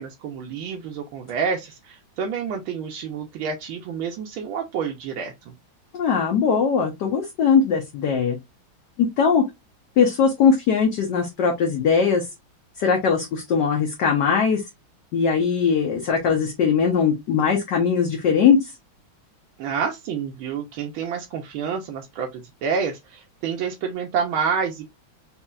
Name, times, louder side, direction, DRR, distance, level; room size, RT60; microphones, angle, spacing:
voice 1, 0.0-5.3 19.6-24.9, right 6 dB, 90° right, 1.5 m, -28 dB
voice 2, 5.9-8.4 9.0-9.4 10.0-12.3 12.8-14.6 15.1-18.7, left 6 dB, 65° left, 1.3 m, -20 dB
4.3 x 2.9 x 2.3 m
omnidirectional pair, 2.2 m